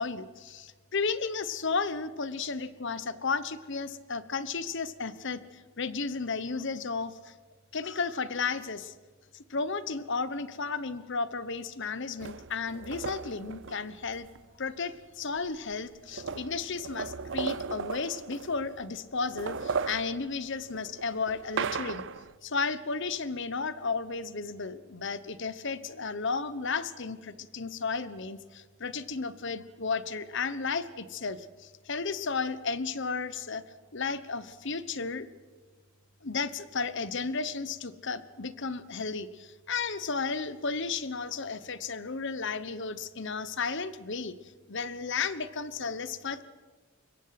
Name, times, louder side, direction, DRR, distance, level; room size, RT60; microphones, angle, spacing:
voice 1, 0.0-7.3 7.7-8.9 9.3-14.3 14.6-22.1 22.4-33.6 33.9-35.3 36.2-44.4 44.7-46.4, left 4 dB, 55° left, 14 dB, 1.1 m, -33 dB
sound 1, 12.2-14.4 15.4-15.5 15.7-18.8 19.2-22.3, right 5 dB, 55° right, 0.7 m, -36 dB
25.0 x 22.0 x 6.0 m, 1.4 s
head